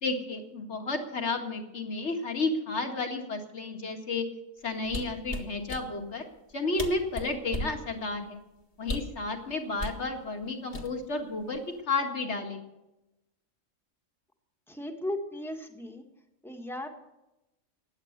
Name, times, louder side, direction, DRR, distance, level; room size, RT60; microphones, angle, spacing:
voice 1, 0.0-4.3 4.6-6.2 6.5-8.4 8.8-12.6, left 3 dB, 55° left, 4 dB, 2.3 m, -32 dB
sound 1, 4.8-5.8 6.5-6.6 6.8-7.8 8.8-9.2 9.8-10.0 10.7-11.2 11.5-11.8, left 1 dB, 35° left, 1.7 m, -35 dB
voice 2, 14.7-16.0 16.4-16.9, left 1 dB, ahead, 4 dB, 1.7 m, -36 dB
16.0 x 10.5 x 6.7 m, 0.95 s
omnidirectional pair, 1.4 m